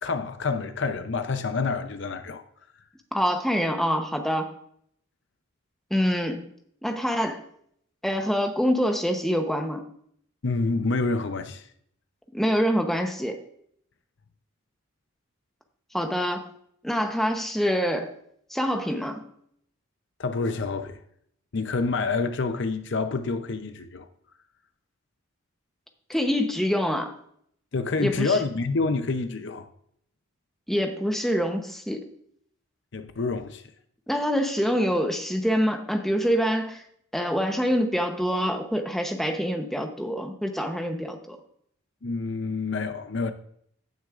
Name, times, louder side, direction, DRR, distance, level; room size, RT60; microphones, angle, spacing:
voice 1, 0.0-2.4 10.4-11.7 20.2-21.0 21.5-24.1 27.7-29.7 32.9-33.6 42.0-43.3, left 3 dB, 55° left, 0.6 m, -27 dB
voice 2, 3.1-4.5 5.9-6.5 6.8-7.4 8.0-9.8 12.3-13.4 15.9-16.5 16.8-18.1 18.5-19.2 26.1-27.1 28.0-28.4 30.7-32.1 34.1-36.8 37.1-41.4, equal, ahead, 0.8 m, -25 dB
16.0 x 6.2 x 2.5 m
head